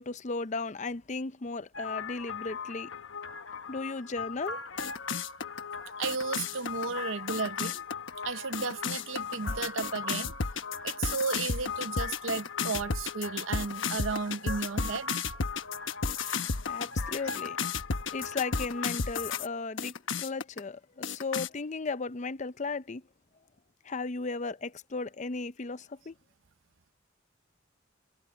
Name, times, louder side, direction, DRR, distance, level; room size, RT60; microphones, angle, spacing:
voice 1, 0.0-2.9 3.7-4.6 16.7-17.6 18.1-23.0 23.8-26.1, left 3 dB, 40° left, 0.6 m, -35 dB
sound 1, 1.7-19.5 19.8-20.6 21.0-21.5, left 5 dB, 80° left, 1.1 m, -34 dB
voice 2, 6.0-7.8 8.2-10.4 10.8-15.1, right 4 dB, 90° right, 0.8 m, -34 dB
head